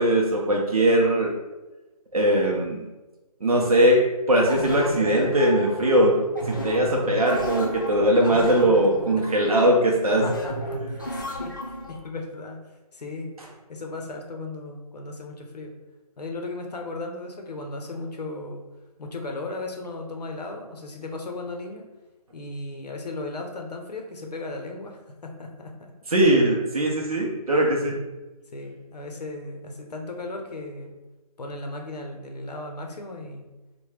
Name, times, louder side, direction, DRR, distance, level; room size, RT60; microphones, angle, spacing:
voice 1, 0.0-1.3 2.1-2.9 3.4-6.2 6.5-10.3 26.1-28.0, right 1 dB, 65° right, -1 dB, 0.7 m, -20 dB
sound 1, 4.5-12.0, equal, 30° left, 0.4 m, -33 dB
voice 2, 10.2-12.6 12.9-13.3 13.7-15.8 16.2-18.7 19.0-21.8 22.3-25.9 28.5-31.0 31.4-33.5, left 2 dB, 90° left, 2 dB, 0.8 m, -36 dB
3.3 x 2.2 x 3.2 m, 1.1 s
hypercardioid pair, 180°, 20 cm